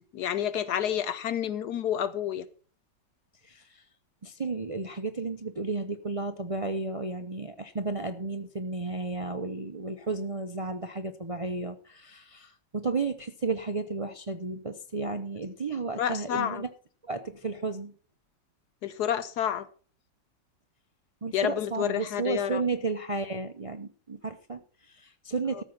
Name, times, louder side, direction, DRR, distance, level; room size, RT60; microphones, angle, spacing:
voice 1, 0.1-2.5 16.0-16.6 18.8-19.7 21.3-22.6 25.5-25.6, left 10 dB, 70° left, 14 dB, 1.2 m, -29 dB
voice 2, 3.4-3.8 4.2-16.7 17.0-17.9 21.2-25.6, right 3 dB, 60° right, 7 dB, 0.3 m, -33 dB
13.5 x 6.4 x 6.0 m, 0.41 s
omnidirectional pair, 1.9 m